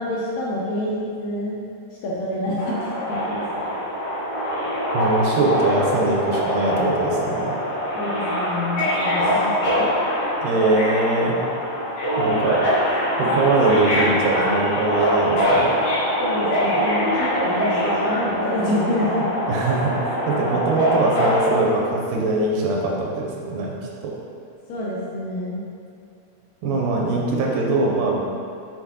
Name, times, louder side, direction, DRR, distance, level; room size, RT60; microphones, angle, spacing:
voice 1, 0.0-1.6 2.0-3.7 7.9-9.4 9.8-10.0 16.2-19.5 24.7-25.6, left 1 dB, 75° left, -5 dB, 1.8 m, -27 dB
Subway metro underground, 2.6-21.5, equal, 50° left, 2.3 m, -23 dB
voice 2, 4.9-7.6 10.4-11.4 12.2-15.7 19.5-23.8 24.0-24.1 26.6-28.2, right 2 dB, 80° right, -2 dB, 2.2 m, -22 dB
8.1 x 4.2 x 2.9 m, 2.5 s
omnidirectional pair, 3.7 m